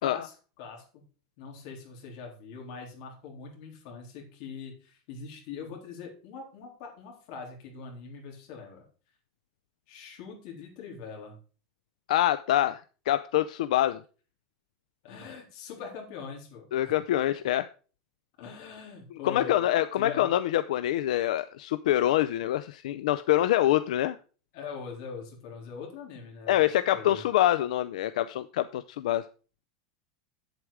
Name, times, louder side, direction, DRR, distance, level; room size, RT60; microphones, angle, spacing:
voice 1, 0.0-1.0 1.4-8.8 9.9-11.4 15.0-16.9 18.4-19.6 20.0-20.2 24.5-27.2, left 5 dB, 45° left, 1 dB, 3.8 m, -42 dB
voice 2, 12.1-12.8 13.1-14.0 16.7-17.7 19.2-24.2 26.5-29.2, left 13 dB, 80° left, 12 dB, 0.5 m, -25 dB
8.8 x 8.1 x 4.9 m, 0.37 s
supercardioid pair, 175°, 4 cm